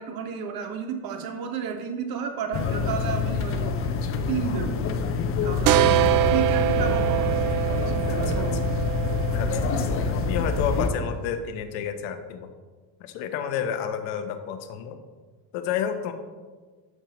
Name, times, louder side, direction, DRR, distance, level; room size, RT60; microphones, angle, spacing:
voice 1, 0.0-3.8 4.3-4.8 5.4-7.6 7.9-8.9, right 6 dB, 50° right, 5 dB, 1.3 m, -32 dB
sound 1, 2.5-10.9, left 5 dB, 30° left, 0.6 m, -27 dB
sound 2, 5.7-11.1, right 11 dB, 85° right, 0.6 m, -25 dB
voice 2, 8.1-8.4 9.3-12.5 13.0-15.0 15.5-16.1, left 8 dB, 75° left, 7 dB, 1.0 m, -30 dB
11.0 x 6.6 x 3.0 m, 1.4 s
cardioid pair, 130°, 47 cm